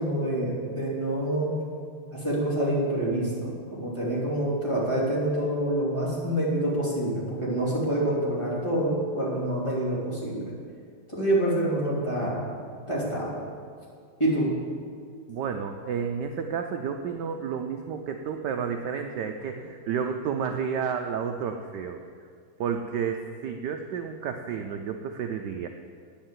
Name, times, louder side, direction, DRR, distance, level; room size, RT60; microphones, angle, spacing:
voice 1, 0.0-1.5 2.1-10.4 11.1-12.4 12.9-13.4 14.2-14.5, right 1 dB, 15° left, -7 dB, 3.2 m, -27 dB
voice 2, 15.3-22.0 22.6-25.7, right 7 dB, 75° right, 5 dB, 1.0 m, -31 dB
9.6 x 8.8 x 7.5 m, 2.1 s
omnidirectional pair, 2.4 m